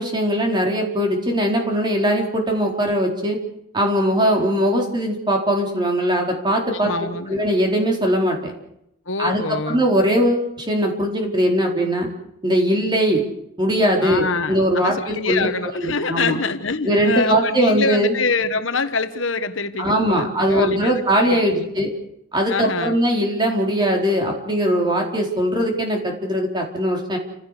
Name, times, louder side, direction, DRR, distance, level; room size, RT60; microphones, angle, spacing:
voice 1, 0.0-3.4 3.7-6.9 7.3-8.5 9.2-12.1 12.4-13.2 13.6-15.5 15.8-16.4 16.8-18.1 19.8-21.9 22.3-27.2, equal, 20° right, 1 dB, 4.4 m, -20 dB
voice 2, 6.7-7.4 9.1-9.8 14.0-21.7 22.5-23.0, left 4 dB, 60° left, 9 dB, 1.3 m, -25 dB
30.0 x 16.0 x 6.7 m, 0.79 s
head